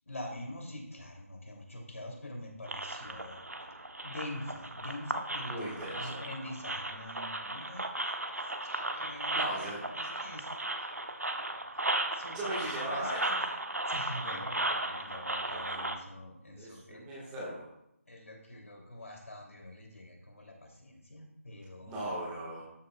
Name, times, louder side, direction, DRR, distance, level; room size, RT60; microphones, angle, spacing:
voice 1, 0.0-3.7 4.0-10.9 12.1-13.4 13.9-17.1 18.1-22.3, left 1 dB, 70° left, 0 dB, 2.9 m, -45 dB
sound 1, 2.6-16.0, right 2 dB, 90° right, 0.9 m, -36 dB
voice 2, 5.4-6.2 9.3-9.8 12.3-13.2 15.7-15.9 16.6-17.7 21.8-22.6, right 1 dB, 10° right, -6 dB, 1.6 m, -38 dB
13.0 x 6.7 x 2.4 m, 0.81 s
figure-of-eight pair, 160°, 8 cm